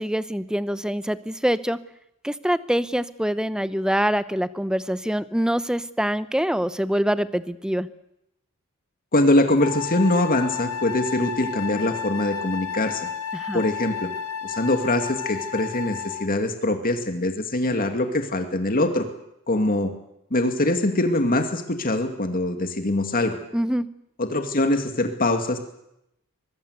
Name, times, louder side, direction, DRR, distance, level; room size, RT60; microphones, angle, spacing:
voice 1, 0.0-1.8 2.2-7.9 13.3-13.6 23.5-23.9, equal, 5° right, 14 dB, 0.9 m, -25 dB
voice 2, 9.1-13.1 13.5-14.1 14.4-19.0 19.5-19.9 20.3-23.4 24.2-25.6, left 1 dB, 45° left, 6 dB, 2.3 m, -23 dB
Wind instrument woodwind instrument, 9.6-16.4, left 7 dB, 85° left, 2.0 m, -32 dB
24.0 x 22.0 x 8.1 m, 0.82 s
head